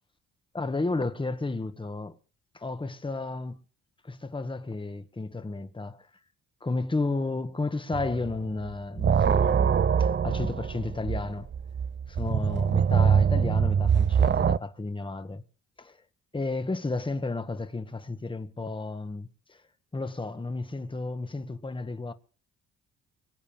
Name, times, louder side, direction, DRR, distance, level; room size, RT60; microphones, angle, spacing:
voice 1, 0.5-2.2 2.5-3.6 4.0-6.1 6.6-9.7 10.0-11.5 12.1-15.4 15.8-16.0 16.3-19.6 19.9-22.1, left 3 dB, 15° left, 1.6 m, -32 dB
sound 1, 7.9-8.4 8.7-14.6, right 7 dB, 35° right, 0.7 m, -24 dB
23.5 x 8.6 x 7.2 m
cardioid pair, 90°, 30 cm